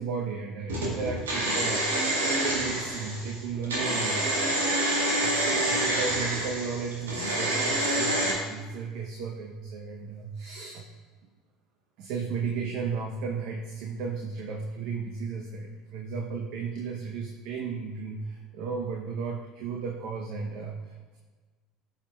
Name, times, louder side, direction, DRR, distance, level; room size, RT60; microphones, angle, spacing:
voice 1, 0.0-10.9 12.0-21.2, right 5 dB, 60° right, 1 dB, 0.7 m, -34 dB
sound 1, 0.7-8.3, right 1 dB, 80° right, 1.9 m, -27 dB
12.5 x 5.7 x 2.3 m, 1.4 s
hypercardioid pair, 70°, 0 cm